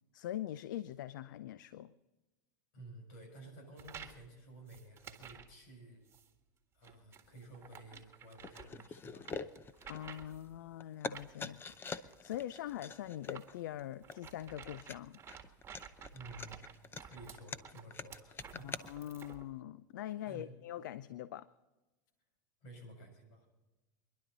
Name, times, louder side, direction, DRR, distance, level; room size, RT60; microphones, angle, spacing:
voice 1, 0.1-1.9 9.9-11.7 12.0-15.2 18.6-21.5, left 12 dB, 80° left, 16 dB, 0.5 m, -43 dB
voice 2, 2.7-6.0 6.7-9.3 11.4-11.6 16.1-16.6 17.0-19.2 20.2-20.5 22.6-23.5, right 1 dB, 65° left, 4 dB, 6.8 m, -53 dB
sound 1, 3.8-4.3 4.7-5.5 6.1-6.3 6.8-10.6 11.1-19.5, right 7 dB, 25° right, 1.8 m, -53 dB
sound 2, 7.9-8.1 8.4-10.5 10.8-18.9, left 5 dB, 20° left, 0.7 m, -45 dB
24.0 x 11.5 x 4.1 m, 1.1 s
supercardioid pair, 115°, 10 cm